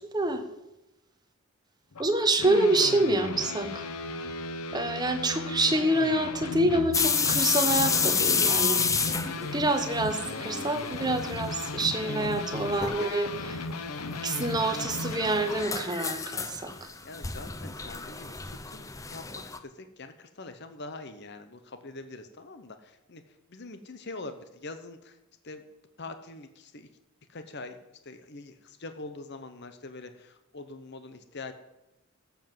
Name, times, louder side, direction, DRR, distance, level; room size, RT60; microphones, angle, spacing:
voice 1, 0.1-0.5 2.0-3.8 4.7-8.8 9.4-13.6 14.2-16.7, right 2 dB, 20° right, 7 dB, 1.1 m, -27 dB
sound 1, 1.9-15.7, left 3 dB, 85° left, 1.0 m, -36 dB
sound 2, 6.9-10.7 11.0-11.7 12.0-12.1 12.8-13.2 14.2-19.6, left 5 dB, 15° left, 0.6 m, -29 dB
voice 2, 12.7-13.1 17.0-23.2 23.5-25.1 25.4-25.6 26.0-26.9 27.3-27.8 28.0-31.5, left 3 dB, 50° left, 9 dB, 1.0 m, -44 dB
13.0 x 7.3 x 7.6 m, 0.94 s
head